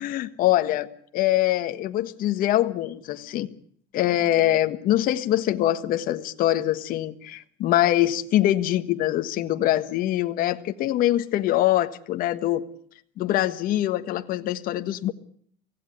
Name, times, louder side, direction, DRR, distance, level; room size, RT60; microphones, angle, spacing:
voice 1, 0.0-3.5 3.9-12.6 13.2-15.1, left 14 dB, 45° left, 8 dB, 1.5 m, -24 dB
25.0 x 17.0 x 9.1 m, 0.63 s
cardioid pair, 160°, 20 cm